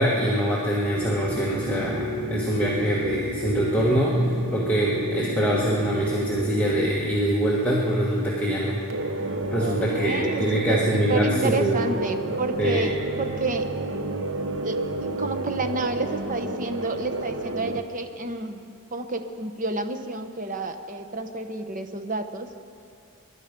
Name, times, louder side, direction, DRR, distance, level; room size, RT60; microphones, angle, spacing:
voice 1, 0.0-8.8 9.5-11.8 12.6-12.8, right 1 dB, 5° left, -6 dB, 1.4 m, -24 dB
sound 1, 0.9-6.9 8.9-17.8, right 2 dB, 60° right, 0.9 m, -31 dB
voice 2, 9.6-13.7 14.6-14.8 15.2-18.6 18.9-22.5, right 3 dB, 35° right, 7 dB, 0.9 m, -30 dB
23.5 x 11.5 x 5.2 m, 2.5 s
head